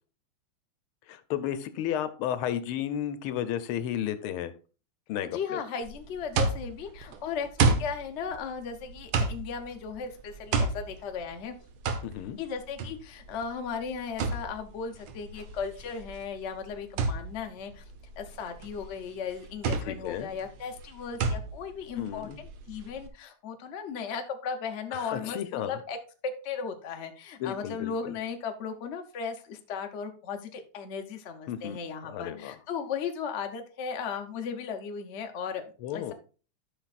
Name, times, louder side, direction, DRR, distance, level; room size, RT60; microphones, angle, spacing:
voice 1, 1.1-4.5 5.1-5.6 12.0-12.4 19.8-20.3 22.0-22.4 24.9-25.7 27.4-28.1 31.5-31.8 32.0-32.5 35.8-36.1, left 10 dB, 80° left, 12 dB, 1.6 m, -33 dB
voice 2, 5.2-11.5 12.4-17.8 18.2-26.0 26.4-35.6 35.9-36.1, left 6 dB, 50° left, 5 dB, 0.8 m, -36 dB
sound 1, 5.8-23.1, right 4 dB, 75° right, 1.8 m, -32 dB
13.5 x 5.8 x 2.4 m, 0.35 s
omnidirectional pair, 2.4 m